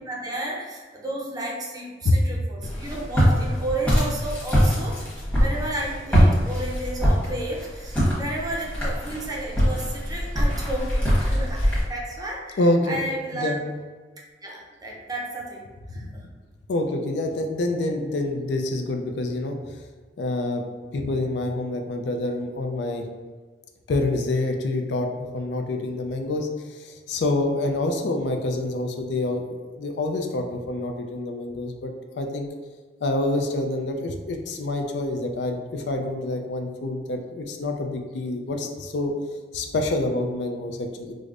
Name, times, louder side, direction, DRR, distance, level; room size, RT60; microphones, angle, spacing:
voice 1, 0.0-13.6 14.4-15.6 15.9-16.3, right 1 dB, 20° right, -2 dB, 0.5 m, -32 dB
Walk footsteps, 2.6-11.8, equal, 5° left, 1.1 m, -23 dB
voice 2, 12.6-13.0 13.3-13.6 16.0-16.1 16.7-19.5 20.2-20.6 20.9-23.0 23.9-25.1 25.3-32.5 33.0-39.1 39.5-41.1, left 2 dB, 70° left, 3 dB, 0.4 m, -27 dB
4.9 x 2.1 x 2.5 m, 1.4 s
head